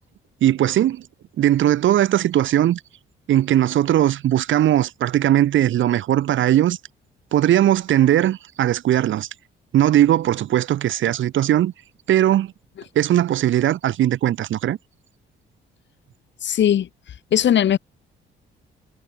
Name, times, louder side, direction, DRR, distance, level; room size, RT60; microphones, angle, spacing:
voice 1, 0.4-1.1 1.4-2.8 3.3-6.8 7.3-9.3 9.7-11.7 12.1-12.5 12.9-14.8, right 12 dB, 75° right, 4.3 m, -19 dB
voice 2, 16.4-16.9 17.3-17.8, left 10 dB, 65° left, 6.2 m, -18 dB
cardioid pair, 90°, 20 cm